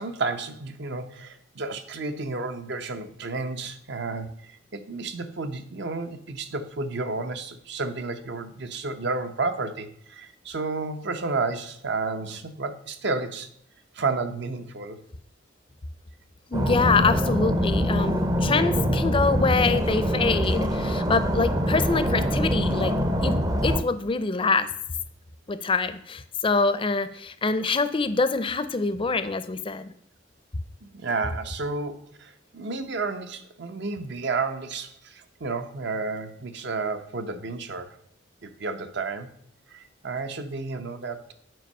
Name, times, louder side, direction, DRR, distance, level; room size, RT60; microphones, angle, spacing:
voice 1, 0.0-13.5 13.9-15.0 30.8-38.0 38.4-39.3 39.7-41.3, right 3 dB, 60° right, 9 dB, 0.8 m, -31 dB
voice 2, 16.5-22.9 23.2-23.4 23.6-24.7 25.5-29.9, left 4 dB, 25° left, 12 dB, 0.5 m, -25 dB
sound 1, 16.5-23.8, equal, 20° right, 0.6 m, -24 dB
7.7 x 5.3 x 5.4 m, 0.66 s
head